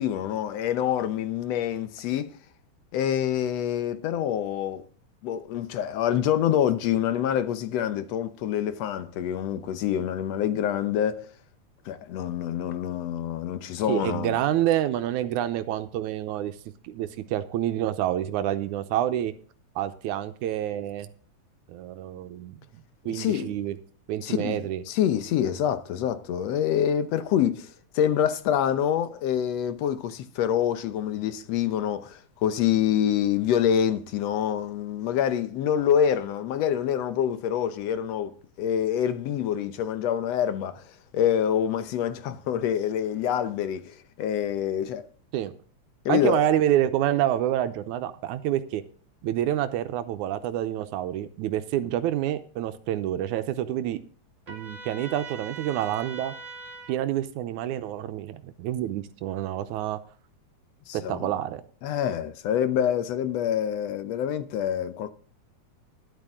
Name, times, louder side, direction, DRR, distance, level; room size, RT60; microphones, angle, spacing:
voice 1, 0.0-2.3 2.9-4.8 5.2-11.3 11.9-14.4 23.1-23.5 24.2-27.7 28.0-38.3 38.6-40.8 41.1-45.0 46.1-46.4 60.9-61.3 61.8-65.1, left 9 dB, 70° left, 1.9 m, -26 dB
voice 2, 13.9-16.6 16.8-19.3 19.8-21.1 21.7-22.6 23.1-23.8 24.1-24.8 45.3-45.5 46.1-48.8 49.2-54.0 54.5-56.3 56.9-60.0 60.9-61.6, right 12 dB, 85° right, 2.2 m, -27 dB
Trumpet, 54.5-57.0, right 4 dB, 25° right, 2.6 m, -41 dB
13.0 x 11.0 x 3.6 m
omnidirectional pair, 3.4 m